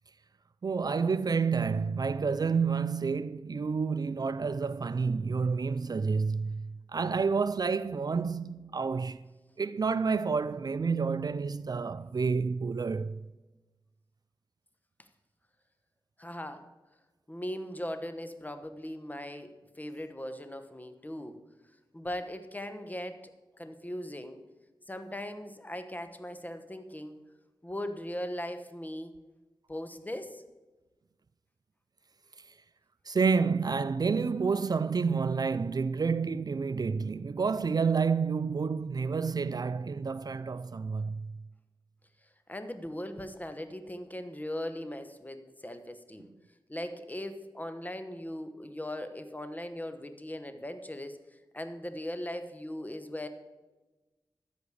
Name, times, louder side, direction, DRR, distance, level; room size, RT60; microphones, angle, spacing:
voice 1, 0.6-9.2 9.6-13.2 33.1-41.4, right 5 dB, 50° right, 0.4 m, -29 dB
voice 2, 16.2-16.6 17.3-21.4 21.9-24.4 24.9-27.2 27.6-29.2 29.7-30.4 42.5-46.3 46.7-53.3, left 1 dB, 20° left, 1.2 m, -39 dB
13.5 x 5.1 x 8.4 m
cardioid pair, 50°, 9 cm